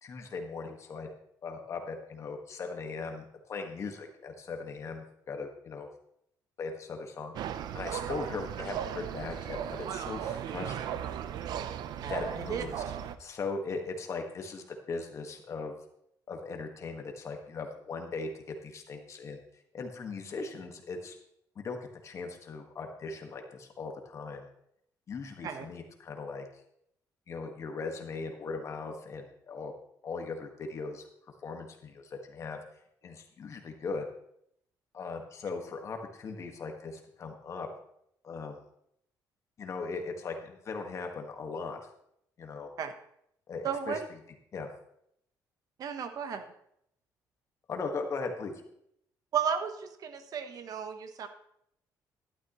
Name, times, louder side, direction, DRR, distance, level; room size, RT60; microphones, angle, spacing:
voice 1, 0.0-1.1 1.4-5.9 6.6-11.1 12.0-12.7 13.2-15.7 16.3-19.4 19.7-21.2 21.5-21.8 22.0-24.5 25.1-26.4 27.3-29.7 30.0-31.1 31.4-32.6 33.0-34.0 34.9-37.7 38.2-38.6 39.6-41.9 42.4-42.7 43.5-44.0 44.5-44.7 47.7-48.5, left 4 dB, 45° left, 4 dB, 1.7 m, -39 dB
sound 1, 7.3-13.1, right 9 dB, 75° right, 0.7 m, -36 dB
voice 2, 12.0-12.6 25.4-25.6 42.8-42.9 43.6-44.0 45.8-46.5 49.3-51.3, right 7 dB, 55° right, 8 dB, 1.1 m, -34 dB
12.0 x 12.0 x 3.1 m, 0.73 s
cardioid pair, 130°, 7 cm